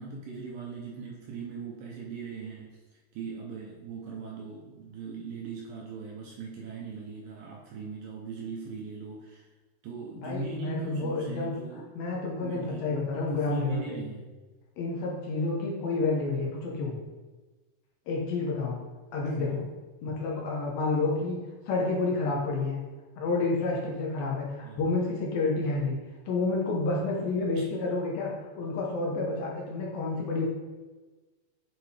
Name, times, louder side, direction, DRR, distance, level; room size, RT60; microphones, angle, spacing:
voice 1, 0.0-2.8 3.1-9.5 9.8-11.9 12.4-14.3 19.4-19.6 24.6-24.8, right 5 dB, 75° right, -2 dB, 2.2 m, -39 dB
voice 2, 10.2-14.1 14.8-17.0 18.1-18.8 19.1-19.6 20.0-21.4 21.7-22.8 23.2-26.0 26.3-30.5, left 3 dB, 70° left, -2 dB, 2.6 m, -29 dB
9.8 x 4.6 x 3.4 m, 1.3 s
omnidirectional pair, 4.7 m